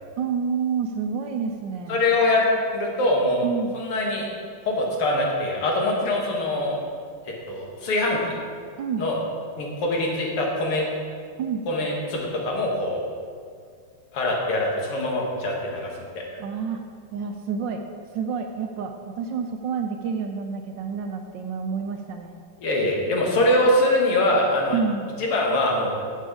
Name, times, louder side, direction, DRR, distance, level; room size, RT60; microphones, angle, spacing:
voice 1, 0.2-2.0 3.4-3.7 8.8-9.0 11.4-11.6 16.4-16.8 17.1-17.8 18.1-22.3 24.7-25.1, right 6 dB, 70° right, 5 dB, 1.1 m, -28 dB
voice 2, 1.9-2.5 2.7-3.5 3.7-4.3 4.7-6.8 7.5-8.2 9.0-9.2 9.6-10.8 11.7-13.0 14.1-15.9 16.2-16.4 22.6-24.8 25.2-25.9, left 1 dB, 90° left, -1 dB, 2.5 m, -23 dB
10.0 x 6.9 x 4.8 m, 2.2 s
omnidirectional pair, 2.4 m